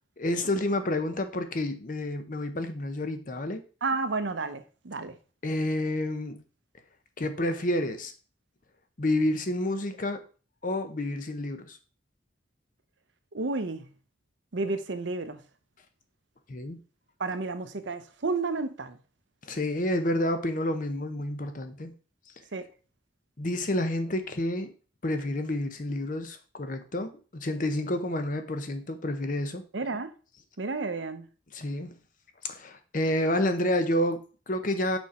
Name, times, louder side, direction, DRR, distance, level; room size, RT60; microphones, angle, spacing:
voice 1, 0.2-3.6 5.4-6.4 7.2-8.1 9.0-10.2 10.6-11.8 16.5-16.8 19.4-21.9 23.4-24.7 25.0-29.6 31.5-31.9 32.4-35.0, left 1 dB, 45° left, 0.7 m, -29 dB
voice 2, 3.8-5.2 13.3-13.9 14.5-15.4 17.2-19.0 22.5-22.7 29.7-30.1 30.6-31.3, right 3 dB, 70° right, 0.7 m, -31 dB
6.2 x 5.0 x 4.2 m
head